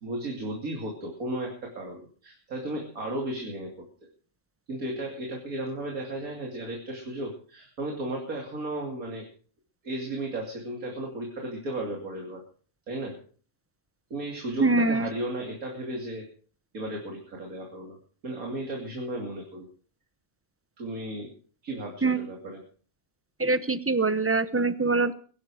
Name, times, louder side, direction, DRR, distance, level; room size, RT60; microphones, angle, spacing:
voice 1, 0.0-3.7 4.7-9.3 9.8-12.4 12.9-13.2 14.1-16.3 16.7-18.0 18.2-19.7 20.8-21.3 21.6-22.6, right 1 dB, 85° right, 0 dB, 3.2 m, -34 dB
voice 2, 14.6-15.1 22.0-22.2 23.4-25.1, right 3 dB, 15° right, 13 dB, 0.5 m, -24 dB
22.0 x 11.5 x 4.8 m, 0.44 s
omnidirectional pair, 1.5 m